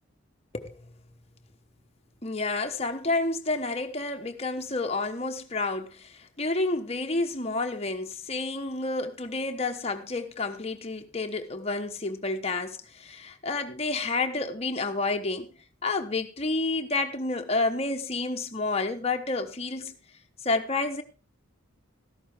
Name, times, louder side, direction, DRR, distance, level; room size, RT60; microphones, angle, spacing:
voice 1, 2.2-15.5 15.8-20.0 20.4-21.0, left 3 dB, 30° left, 1.1 m, -30 dB
13.5 x 11.5 x 3.5 m
head